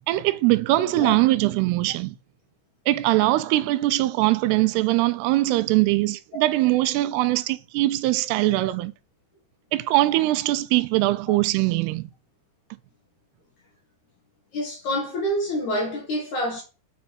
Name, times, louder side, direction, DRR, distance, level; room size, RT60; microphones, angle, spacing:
voice 1, 0.1-2.1 2.9-8.9 9.7-12.0, right 17 dB, 85° right, 2.5 m, -21 dB
voice 2, 14.5-16.6, equal, 65° left, 2.0 m, -27 dB
6.5 x 4.2 x 4.3 m
omnidirectional pair, 4.7 m